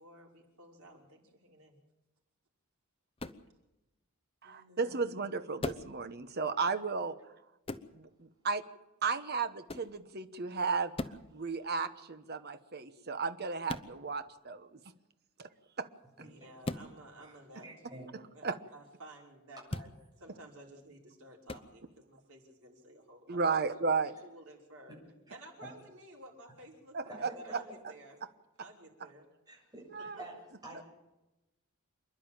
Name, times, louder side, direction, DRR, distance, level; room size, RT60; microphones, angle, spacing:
voice 1, 0.0-1.8 4.4-5.0 16.2-18.1 18.3-19.9 20.2-23.6 24.2-24.9 25.3-28.2 28.6-29.3 30.2-30.3, right 1 dB, 75° right, -1 dB, 5.5 m, -54 dB
sound 1, 3.2-3.5 5.6-5.9 7.7-7.9 9.7-9.9 10.9-11.3 13.7-13.9 16.6-16.9 19.7-19.9 21.5-21.7, left 2 dB, 25° left, 0.8 m, -38 dB
voice 2, 4.4-7.1 7.9-8.6 9.0-14.8 15.4-15.5 15.8-15.9 18.4-18.6 23.3-24.1 26.9-27.3 29.9-30.2, right 4 dB, 45° right, 10 dB, 1.1 m, -34 dB
voice 3, 16.2-16.5 17.2-18.1 19.5-19.6 25.3-25.7 27.0-27.6 29.5-30.3 30.6-30.8, right 1 dB, 15° right, -3 dB, 7.5 m, -49 dB
27.5 x 11.0 x 8.8 m, 0.98 s
head